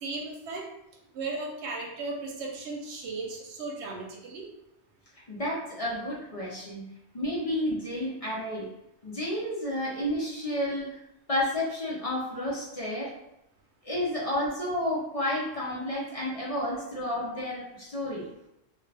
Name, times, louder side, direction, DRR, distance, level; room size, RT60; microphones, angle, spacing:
voice 1, 0.0-0.7 1.1-4.5, right 3 dB, 85° right, -1 dB, 1.0 m, -36 dB
voice 2, 5.3-6.9 7.1-8.7 9.0-10.9 11.3-13.1 13.8-18.3, left 1 dB, 40° left, -6 dB, 0.6 m, -31 dB
2.3 x 2.3 x 3.2 m, 0.84 s
omnidirectional pair, 1.1 m